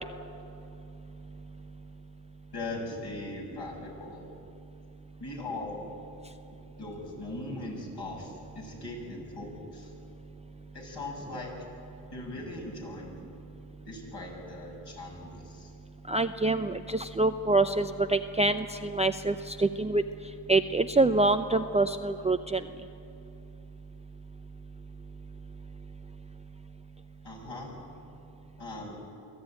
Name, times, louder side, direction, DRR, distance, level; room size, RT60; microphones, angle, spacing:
voice 1, 2.5-4.3 5.2-5.9 6.8-9.9 10.7-11.5 12.1-13.2 13.9-15.7 27.2-27.8 28.6-29.1, left 2 dB, 50° left, -1 dB, 7.6 m, -40 dB
voice 2, 16.1-20.0 20.5-22.6, right 2 dB, 15° right, 8 dB, 0.6 m, -26 dB
24.0 x 15.0 x 9.0 m, 2.9 s
cardioid pair, 80°, 49 cm